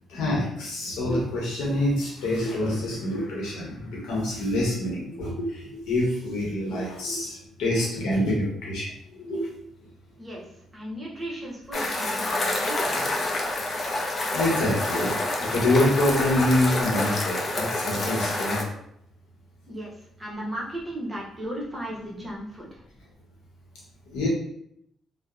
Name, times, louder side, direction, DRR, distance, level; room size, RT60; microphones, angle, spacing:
voice 1, 0.1-9.5 14.3-15.1 15.4-18.6 24.1-24.3, left 1 dB, 90° left, -4 dB, 0.8 m, -26 dB
voice 2, 10.7-13.2 19.6-19.9 20.2-22.8, right 1 dB, 15° right, -5 dB, 0.8 m, -36 dB
sound 1, 11.7-18.6, left 2 dB, 40° left, 0.5 m, -27 dB
2.7 x 2.0 x 2.4 m, 0.73 s
cardioid pair, 90°, 0 cm